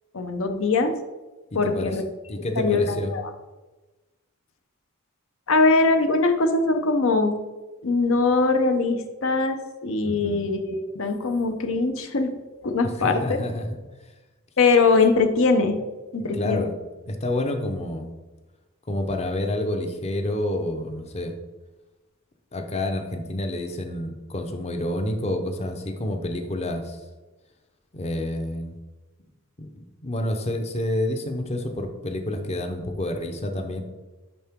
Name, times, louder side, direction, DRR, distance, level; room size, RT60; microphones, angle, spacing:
voice 1, 0.1-1.0 1.5-2.0 2.6-3.3 5.5-7.4 7.8-12.3 12.6-13.4 14.6-15.8 16.1-16.7, left 3 dB, 70° left, 7 dB, 0.7 m, -22 dB
voice 2, 1.5-2.0 2.3-3.1 10.0-10.5 13.0-13.7 16.3-16.7 17.1-18.1 18.9-21.4 22.5-27.0 27.9-28.7 29.6-33.8, left 1 dB, 30° left, 5 dB, 0.7 m, -28 dB
10.5 x 3.8 x 3.6 m, 1.2 s
head